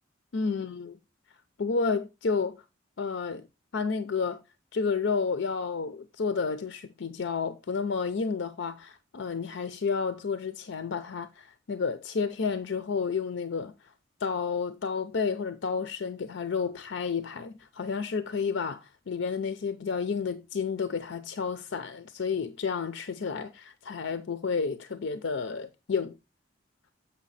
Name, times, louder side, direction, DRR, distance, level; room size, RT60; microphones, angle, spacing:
voice 1, 0.3-0.9 1.6-2.6 3.0-3.4 3.7-4.4 4.7-13.7 14.2-26.1, left 5 dB, 85° left, 0.5 m, -31 dB
7.3 x 5.6 x 4.0 m
head